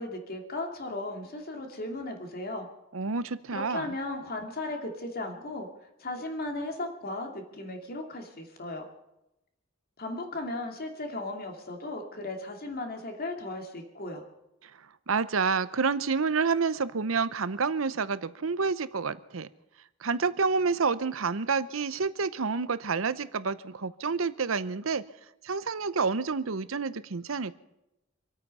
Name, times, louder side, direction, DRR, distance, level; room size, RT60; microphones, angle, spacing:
voice 1, 0.0-2.7 3.5-5.7 6.0-8.9 10.0-14.2, left 2 dB, 50° left, 3 dB, 2.6 m, -36 dB
voice 2, 2.9-3.9 14.6-14.7 15.1-19.5 20.0-25.1 25.4-27.5, right 5 dB, 80° right, 15 dB, 0.8 m, -29 dB
26.5 x 9.0 x 5.5 m, 0.89 s
head